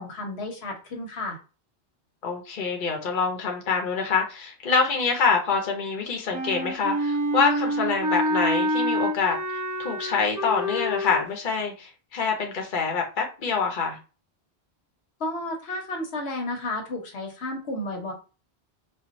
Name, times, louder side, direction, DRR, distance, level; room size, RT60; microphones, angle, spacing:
voice 1, 0.0-1.4 15.2-18.1, left 2 dB, 80° left, 1 dB, 1.3 m, -32 dB
voice 2, 2.2-9.4 9.8-14.0, left 5 dB, 55° left, 2 dB, 0.9 m, -26 dB
Wind instrument woodwind instrument, 6.3-11.2, equal, 20° right, 0.7 m, -27 dB
4.4 x 2.4 x 2.5 m, 0.32 s
omnidirectional pair, 1.1 m